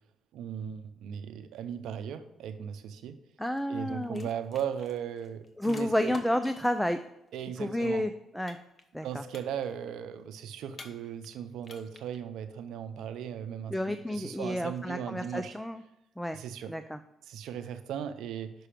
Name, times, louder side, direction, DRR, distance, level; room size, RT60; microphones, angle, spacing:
voice 1, 0.3-3.2 3.7-6.2 7.3-8.0 9.0-15.5 16.3-16.7 17.3-18.5, right 8 dB, 85° right, 10 dB, 0.6 m, -37 dB
voice 2, 3.4-4.3 5.6-7.0 7.6-8.6 8.9-9.2 13.7-15.8 16.2-16.4 16.7-17.0, left 1 dB, 5° left, 9 dB, 0.4 m, -30 dB
sound 1, 3.6-3.8 4.0-6.8 8.5-9.0 9.3-9.9 10.7-11.3 11.6-12.2, left 3 dB, 35° left, 0.9 m, -48 dB
6.2 x 5.6 x 5.0 m, 0.89 s
cardioid pair, 90°, 0 cm